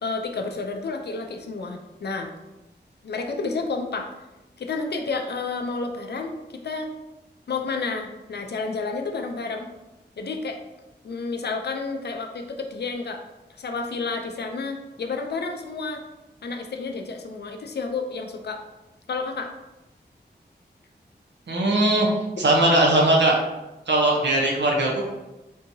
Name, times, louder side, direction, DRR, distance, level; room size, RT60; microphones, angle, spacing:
voice 1, 0.0-2.3 3.0-4.1 4.6-6.4 6.6-6.9 7.5-9.7 10.2-10.6 11.0-13.2 13.6-16.0 16.4-18.6 19.1-19.5, left 4 dB, 70° left, 4 dB, 0.4 m, -30 dB
voice 2, 21.5-22.1 22.4-23.4 23.9-25.0, right 1 dB, 80° right, -1 dB, 0.7 m, -19 dB
3.6 x 2.7 x 2.7 m, 1.0 s
wide cardioid pair, 65°, 18 cm